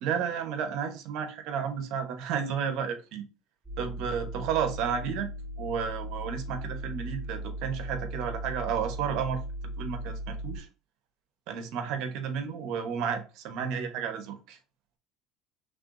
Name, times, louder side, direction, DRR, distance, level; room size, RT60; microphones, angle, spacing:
voice 1, 0.0-3.2 3.8-5.3 5.6-9.4 9.8-10.7 11.5-14.6, right 7 dB, 65° right, 1.0 m, -32 dB
sound 1, 3.6-10.6, right 1 dB, ahead, 2.1 m, -37 dB
5.8 x 3.4 x 2.6 m
cardioid pair, 130°, 0 cm